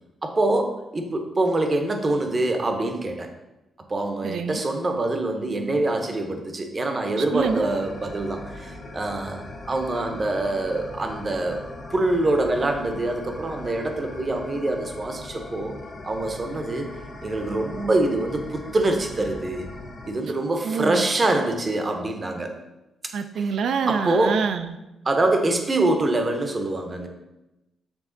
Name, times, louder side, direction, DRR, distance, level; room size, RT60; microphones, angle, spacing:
voice 1, 0.2-3.3 3.9-11.6 11.9-15.7 16.0-16.9 17.2-19.7 20.0-22.5 23.3-23.4 23.9-24.4 25.0-27.1, right 2 dB, 25° right, 4 dB, 0.7 m, -25 dB
voice 2, 4.2-4.6 7.3-7.7 20.6-21.1 23.1-24.8, right 6 dB, 70° right, 9 dB, 0.4 m, -26 dB
sound 1, 7.4-20.1, left 2 dB, 55° left, 1.5 m, -40 dB
7.1 x 3.4 x 3.9 m, 0.98 s
cardioid pair, 145°, 0 cm